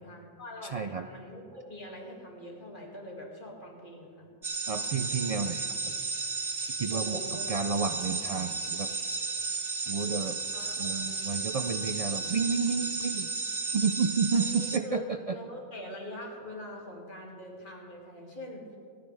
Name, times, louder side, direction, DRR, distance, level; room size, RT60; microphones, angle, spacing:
voice 1, 0.0-4.3 6.9-7.5 7.9-8.2 10.5-11.3 11.7-11.9 14.3-18.8, left 1 dB, 45° left, -2 dB, 2.5 m, -43 dB
voice 2, 0.6-1.0 4.7-5.7 6.6-7.2 7.5-8.9 9.9-10.4 10.8-13.3 13.7-15.3, right 5 dB, 70° right, 8 dB, 0.3 m, -30 dB
sound 1, 4.4-14.8, right 4 dB, 30° right, 0.8 m, -33 dB
27.0 x 10.0 x 3.4 m, 2.5 s
omnidirectional pair, 1.2 m